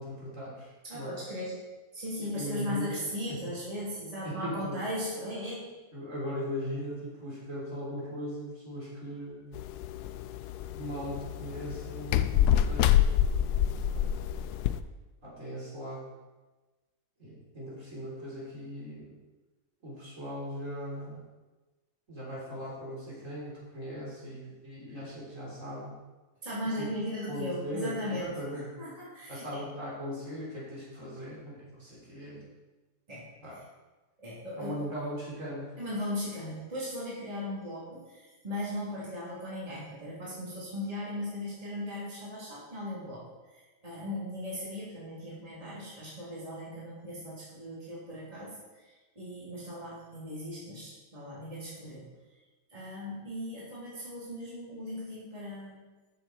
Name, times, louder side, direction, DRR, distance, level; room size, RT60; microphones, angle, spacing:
voice 1, 0.0-1.1 2.2-3.0 3.3-3.5 4.2-4.8 5.9-9.5 10.7-13.5 13.9-14.2 15.2-16.1 17.2-19.2 19.8-21.2 22.1-26.0 26.8-26.9 27.3-28.7 29.3-32.4 33.4-33.5 34.6-35.7, equal, 50° right, -6 dB, 4.1 m, -39 dB
voice 2, 0.8-1.6 1.9-5.7 26.4-29.6 33.1-33.3 34.2-34.8 35.8-52.1 52.7-55.9, left 1 dB, 20° right, -9 dB, 3.5 m, -38 dB
sound 1, 9.6-14.8, left 10 dB, 75° left, 1.1 m, -27 dB
14.0 x 7.0 x 4.5 m, 1.2 s
omnidirectional pair, 1.7 m